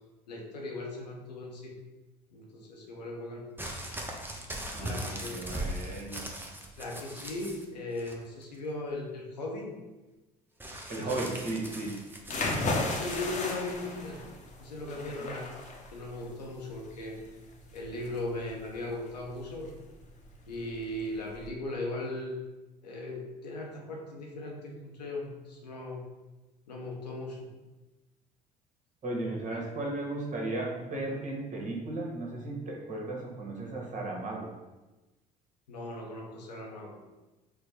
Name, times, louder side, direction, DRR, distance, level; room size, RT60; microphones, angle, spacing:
voice 1, 0.3-1.8 2.3-3.5 4.8-5.4 6.8-9.7 11.0-11.1 12.9-14.2 14.6-15.5 15.9-17.3 17.7-19.7 20.5-22.4 22.8-26.0 26.7-27.5 29.5-29.7 35.7-37.0, left 2 dB, 85° left, -1 dB, 0.7 m, -38 dB
sound 1, 3.6-7.7 8.0-8.6 10.6-13.3 14.2-14.3, right 1 dB, 10° right, 0.7 m, -40 dB
voice 2, 4.7-6.3 10.9-12.0 29.0-34.5, right 2 dB, 35° right, -1 dB, 1.3 m, -35 dB
sound 2, 12.2-21.5, left 2 dB, 35° left, 0.9 m, -36 dB
4.5 x 2.2 x 4.3 m, 1.1 s
figure-of-eight pair, 60°, 21 cm